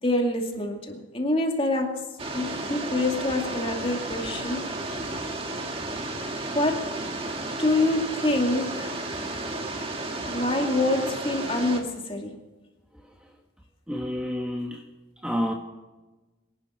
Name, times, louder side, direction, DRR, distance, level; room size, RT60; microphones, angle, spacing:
voice 1, 0.0-2.0 2.3-4.7 6.5-6.9 7.6-9.0 10.3-12.4, left 2 dB, 30° left, 2.4 m, -26 dB
sound 1, 2.2-11.8, right 2 dB, 30° right, 1.7 m, -33 dB
voice 2, 13.9-14.8 15.2-15.5, equal, 5° right, 1.2 m, -29 dB
25.0 x 11.5 x 4.4 m
head